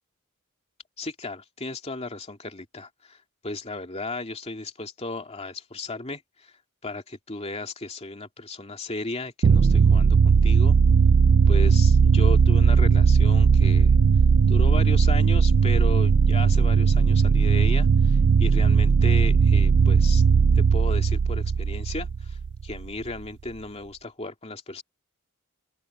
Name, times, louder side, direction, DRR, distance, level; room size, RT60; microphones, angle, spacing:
voice 1, 1.0-3.2 3.4-6.5 6.8-10.8 11.5-13.9 14.5-20.2 20.5-24.8, left 2 dB, 30° left, 2.6 m, -35 dB
sound 1, 9.4-22.9, right 5 dB, 55° right, 0.4 m, -18 dB
open air
head